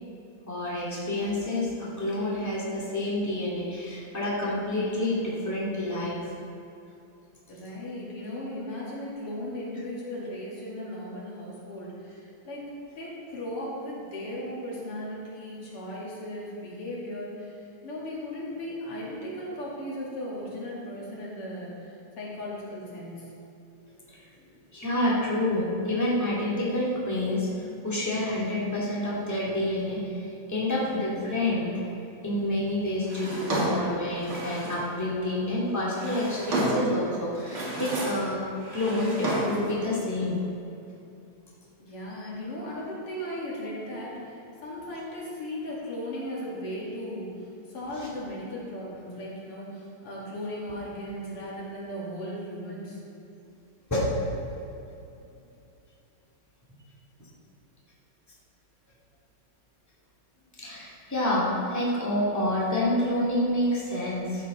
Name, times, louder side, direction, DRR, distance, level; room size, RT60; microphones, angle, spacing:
voice 1, 0.5-6.2 24.1-24.2 24.7-27.5 27.8-31.7 32.2-38.4 38.7-40.4 48.0-48.1 53.9-54.1 57.2-57.3 60.6-64.5, left 1 dB, 10° left, -7 dB, 1.9 m, -28 dB
voice 2, 7.5-12.7 12.9-17.5 17.8-21.7 22.2-23.2 41.8-44.3 44.6-47.3 47.7-53.0, left 1 dB, 90° left, -6 dB, 3.2 m, -36 dB
Drawer open or close, 33.1-34.9 35.7-37.0 37.4-38.3 38.6-39.7, right 2 dB, 70° right, 3.1 m, -31 dB
13.0 x 7.6 x 4.1 m, 2.8 s
omnidirectional pair, 2.4 m